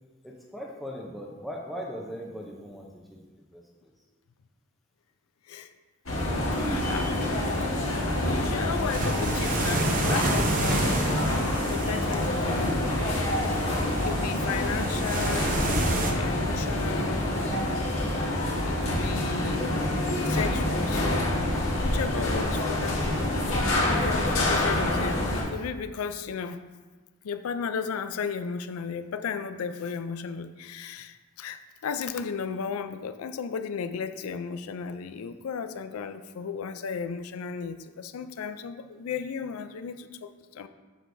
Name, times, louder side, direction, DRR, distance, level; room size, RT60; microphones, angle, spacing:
voice 1, 0.2-3.9, equal, ahead, -2 dB, 0.6 m, -40 dB
sound 1, 6.1-25.4, left 1 dB, 70° left, 1.5 m, -27 dB
voice 2, 6.3-7.2 7.6-11.0 11.7-12.9 13.6-17.3 18.6-19.7 20.2-21.4 21.8-23.0 23.8-26.6 27.2-40.7, left 6 dB, 90° left, 11 dB, 0.4 m, -35 dB
sound 2, 6.5-16.1, right 2 dB, 40° right, 0.6 m, -32 dB
7.6 x 6.4 x 2.6 m, 1.3 s
head